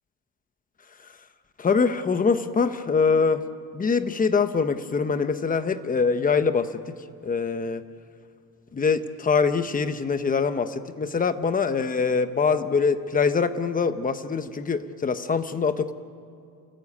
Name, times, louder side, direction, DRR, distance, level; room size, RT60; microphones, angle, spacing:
voice 1, 1.6-3.4 3.7-7.0 7.2-7.8 8.7-15.9, left 5 dB, 25° left, 11 dB, 0.9 m, -24 dB
30.0 x 17.0 x 8.5 m, 2.5 s
cardioid pair, 155°, 36 cm